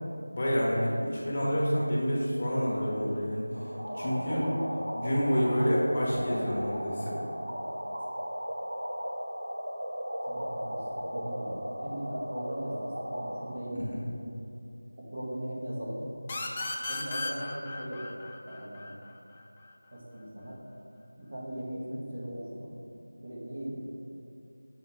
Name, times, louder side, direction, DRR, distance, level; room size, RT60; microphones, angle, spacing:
voice 1, 0.3-3.4 3.9-4.5 4.9-7.1 13.7-14.0, equal, 30° left, -5 dB, 1.1 m, -28 dB
sound 1, 3.6-13.5, equal, 80° right, 0.9 m, -36 dB
voice 2, 10.3-13.9 15.1-16.0 16.9-18.2 18.4-18.9 19.9-20.6 21.1-22.8 23.2-23.8, equal, 40° right, -6 dB, 1.5 m, -38 dB
sound 2, 16.3-19.7, left 2 dB, 15° left, 0.4 m, -36 dB
6.4 x 3.5 x 5.9 m, 2.7 s
figure-of-eight pair, 175°, 0 cm